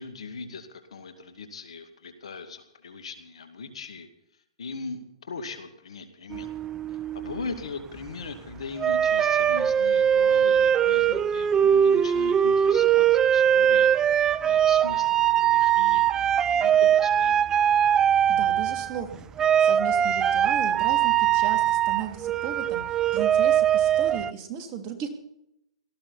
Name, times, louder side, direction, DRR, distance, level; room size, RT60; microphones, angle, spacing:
voice 1, 0.0-4.1 4.6-6.5 6.9-16.1 16.5-17.4, left 4 dB, 75° left, 7 dB, 2.5 m, -39 dB
Six Studies in English Folk Song II, 6.3-7.5 8.8-19.1 19.4-24.3, right 9 dB, 20° right, 0.5 m, -21 dB
voice 2, 18.3-19.3 19.6-22.8 23.1-25.1, right 8 dB, 35° right, 4 dB, 3.1 m, -35 dB
18.5 x 14.5 x 4.3 m, 0.79 s
hypercardioid pair, 125°, 3 cm